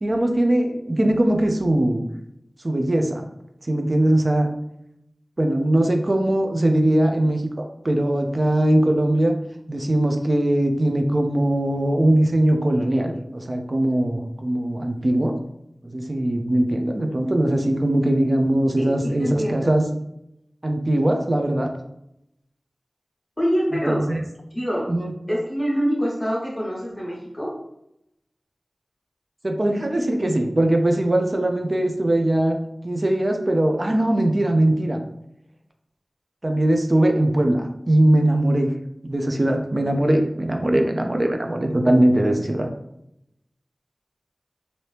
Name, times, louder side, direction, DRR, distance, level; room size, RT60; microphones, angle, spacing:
voice 1, 0.0-2.0 2.6-3.3 3.6-4.5 5.4-9.3 9.7-15.4 15.9-19.8 20.6-21.7 23.9-24.2 24.9-25.1 29.4-32.6 32.8-35.0 36.4-38.7 39.0-42.7, right 1 dB, 45° right, 4 dB, 0.4 m, -20 dB
voice 2, 18.8-19.7 23.4-24.0 24.5-24.9 25.3-27.5, equal, 15° left, -5 dB, 1.0 m, -25 dB
2.9 x 2.7 x 3.2 m, 0.81 s
wide cardioid pair, 45°, 0 cm